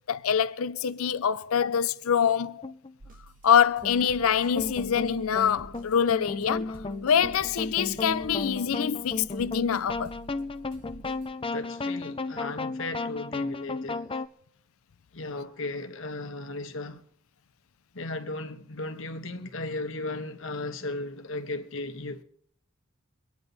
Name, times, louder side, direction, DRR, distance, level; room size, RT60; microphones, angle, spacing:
voice 1, 0.1-2.6 3.4-10.1, left 8 dB, 80° left, 0.5 m, -25 dB
sound 1, 2.6-2.9 3.8-14.3, left 3 dB, 25° left, 0.6 m, -34 dB
sound 2, 3.0-11.3, right 2 dB, 40° right, 1.3 m, -50 dB
voice 2, 11.5-14.2 15.1-17.0 17.9-22.2, left 2 dB, 65° left, 1.4 m, -36 dB
24.5 x 9.7 x 4.0 m
head